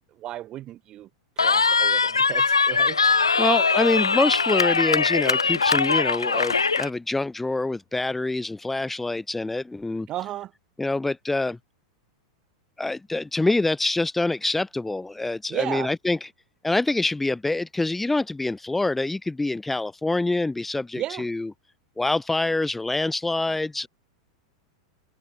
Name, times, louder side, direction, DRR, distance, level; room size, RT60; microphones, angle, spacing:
voice 1, 0.2-1.1 1.4-3.0 10.1-10.5 15.5-15.9 20.9-21.3, right 13 dB, 30° right, 6.4 m, -33 dB
Cheering, 1.4-6.9, left 4 dB, 75° left, 1.0 m, -21 dB
voice 2, 3.4-10.1 10.8-11.6 12.8-16.3 16.6-21.5 22.0-23.9, left 2 dB, 5° left, 0.8 m, -25 dB
figure-of-eight pair, 90°, 3 cm